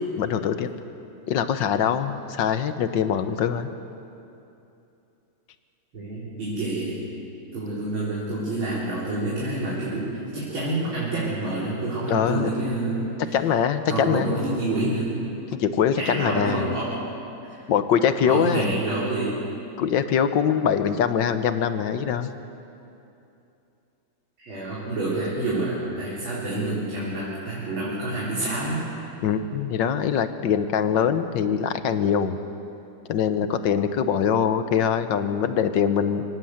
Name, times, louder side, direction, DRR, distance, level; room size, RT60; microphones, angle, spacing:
voice 1, 0.1-0.7 1.3-3.7 12.1-12.5 13.3-14.4 15.6-16.7 17.7-18.8 19.8-22.3 29.2-32.4 33.1-36.2, left 8 dB, 65° left, 10 dB, 1.4 m, -23 dB
voice 2, 5.9-7.0 7.5-13.4 13.9-15.1 16.0-17.0 17.5-17.6 18.2-19.5 24.4-28.8, right 2 dB, 65° right, -8 dB, 4.6 m, -28 dB
24.5 x 17.5 x 7.9 m, 2.8 s
omnidirectional pair, 2.4 m